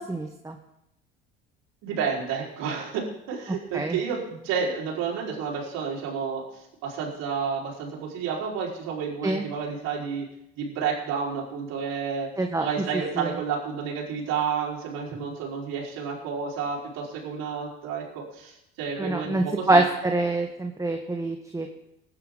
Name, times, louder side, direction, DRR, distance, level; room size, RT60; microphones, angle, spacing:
voice 1, 0.1-0.6 3.7-4.0 9.2-9.4 12.4-12.7 13.2-13.3 19.0-21.7, right 2 dB, 10° right, 4 dB, 1.3 m, -25 dB
voice 2, 1.8-10.3 10.6-12.3 12.6-19.8, right 6 dB, 60° right, -3 dB, 4.7 m, -30 dB
19.5 x 9.9 x 3.9 m, 0.85 s
hypercardioid pair, 70°, 29 cm